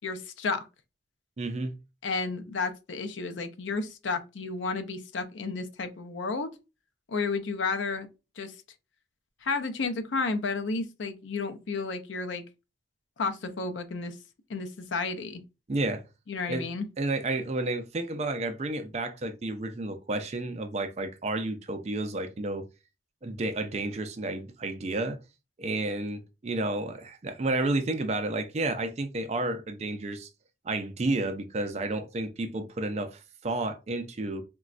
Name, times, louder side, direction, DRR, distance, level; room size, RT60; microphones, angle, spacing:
voice 1, 0.0-0.7 2.0-6.5 7.1-8.1 8.4-8.5 9.4-12.4 13.2-14.2 14.5-15.4 16.3-16.9, left 4 dB, 85° left, 0.5 m, -32 dB
voice 2, 1.4-1.7 15.7-16.0 16.5-16.7 17.0-22.6 23.2-25.2 25.6-30.3 30.6-34.4, right 2 dB, 35° right, 0.4 m, -31 dB
3.9 x 2.2 x 2.4 m
head